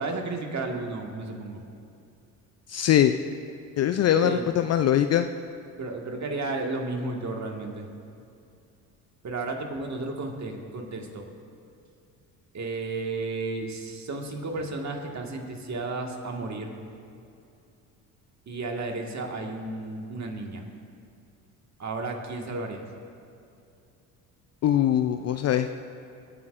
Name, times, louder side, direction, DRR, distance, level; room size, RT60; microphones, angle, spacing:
voice 1, 0.0-1.6 4.2-4.5 5.8-7.9 9.2-11.3 12.5-16.8 18.5-20.6 21.8-22.8, right 3 dB, 35° right, 2 dB, 1.8 m, -33 dB
voice 2, 2.7-3.1 3.8-5.3 24.6-25.8, left 10 dB, 35° left, 9 dB, 0.4 m, -22 dB
23.5 x 9.4 x 2.6 m, 2.6 s
hypercardioid pair, 60°, 45 cm